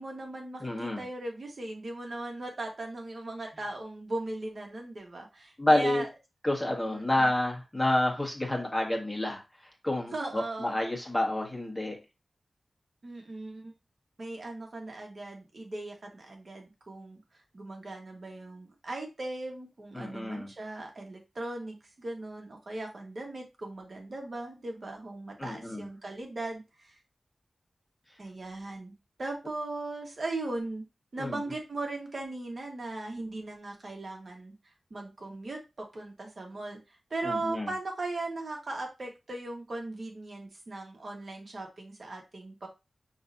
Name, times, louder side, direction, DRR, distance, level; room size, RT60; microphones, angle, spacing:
voice 1, 0.0-6.1 6.9-7.3 10.1-10.8 13.0-13.7 14.2-27.0 28.2-30.8 31.1-34.5 34.9-42.7, right 2 dB, 60° right, 2 dB, 1.4 m, -38 dB
voice 2, 0.6-1.0 5.6-6.0 6.4-9.4 9.8-12.0 19.9-20.5 25.4-25.8 31.2-31.4 37.2-37.7, left 1 dB, 15° left, -1 dB, 1.5 m, -29 dB
5.8 x 3.2 x 2.7 m, 0.26 s
wide cardioid pair, 80°, 0 cm